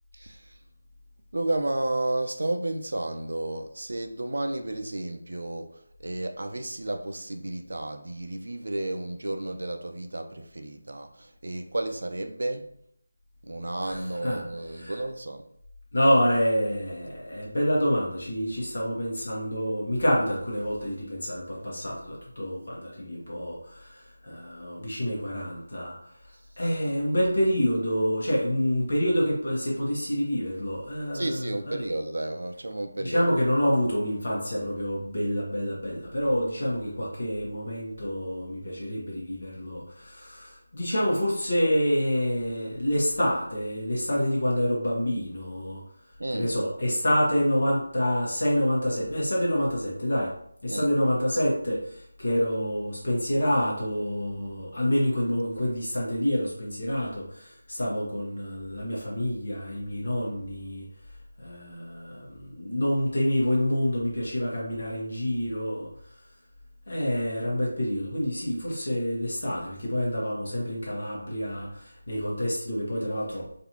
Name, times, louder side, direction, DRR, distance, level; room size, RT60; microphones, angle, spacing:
voice 1, 0.1-0.6 1.3-12.7 13.4-15.5 26.3-26.4 31.1-33.3 46.2-46.6 50.7-50.9, right 2 dB, 70° right, 0.5 m, -32 dB
voice 2, 15.9-26.2 26.6-31.4 31.7-31.8 33.0-45.8 46.3-50.4 50.6-60.9 61.4-66.2 66.9-73.5, equal, 55° left, 1.2 m, -27 dB
3.9 x 2.7 x 2.9 m
figure-of-eight pair, 180°, 0 cm